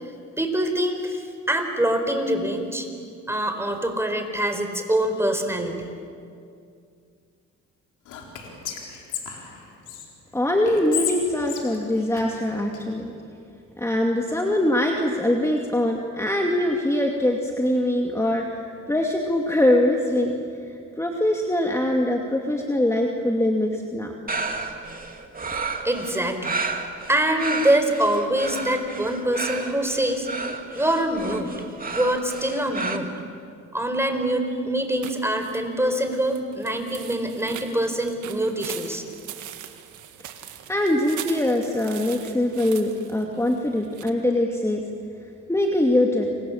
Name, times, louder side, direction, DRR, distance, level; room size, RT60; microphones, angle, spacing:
voice 1, 0.4-2.9 3.3-5.9 25.8-26.6 27.1-30.3 30.7-33.1 33.7-39.0, right 1 dB, 10° right, 5 dB, 4.4 m, -24 dB
Whispering, 8.1-10.1 10.7-12.8, left 8 dB, 90° left, 4.2 m, -33 dB
voice 2, 10.3-13.1 13.8-18.5 18.9-20.3 20.6-24.1 40.7-44.8 45.5-46.3, left 1 dB, 10° left, 1 dB, 2.5 m, -23 dB
sound 1, 24.3-33.0, right 3 dB, 30° right, 2.6 m, -32 dB
sound 2, 35.0-44.1, right 11 dB, 85° right, 1.9 m, -41 dB
29.5 x 25.5 x 7.3 m, 2.4 s
cardioid pair, 90°, 30 cm